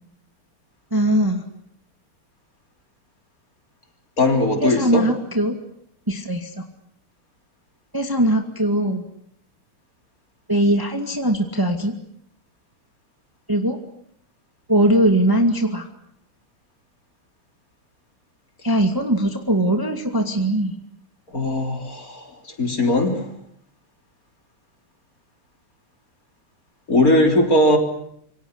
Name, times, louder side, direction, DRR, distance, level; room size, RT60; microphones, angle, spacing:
voice 1, 0.9-1.4 4.6-5.5 6.1-6.6 7.9-9.0 10.5-11.9 13.5-13.8 14.7-15.8 18.6-20.8, right 1 dB, 10° right, 5 dB, 2.0 m, -20 dB
voice 2, 4.2-5.1 21.3-22.2 22.6-23.2 26.9-27.8, left 1 dB, 40° left, 4 dB, 4.2 m, -18 dB
27.0 x 25.0 x 8.0 m, 0.70 s
omnidirectional pair, 2.4 m